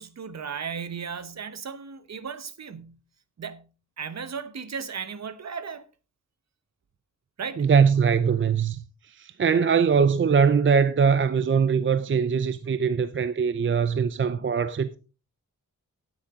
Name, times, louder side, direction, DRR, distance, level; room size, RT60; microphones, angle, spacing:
voice 1, 0.0-3.0 3.4-3.7 4.0-5.9 7.4-7.7, right 6 dB, 55° right, 1.0 m, -35 dB
voice 2, 7.6-8.8 9.1-15.0, right 6 dB, 40° right, 0.5 m, -22 dB
12.5 x 9.9 x 3.6 m
wide cardioid pair, 175°, 32 cm